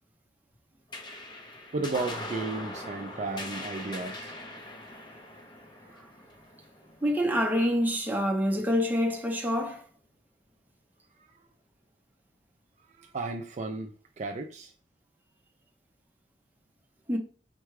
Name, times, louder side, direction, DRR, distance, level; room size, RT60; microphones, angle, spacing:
sound 1, 0.9-7.7, left 1 dB, 25° left, 0.8 m, -41 dB
voice 1, 1.7-4.3 11.2-11.3 13.0-13.9 14.2-14.7, right 3 dB, 40° right, 0.4 m, -34 dB
voice 2, 7.0-9.8 17.1-17.2, equal, 10° right, 0.8 m, -26 dB
4.4 x 2.3 x 4.7 m
head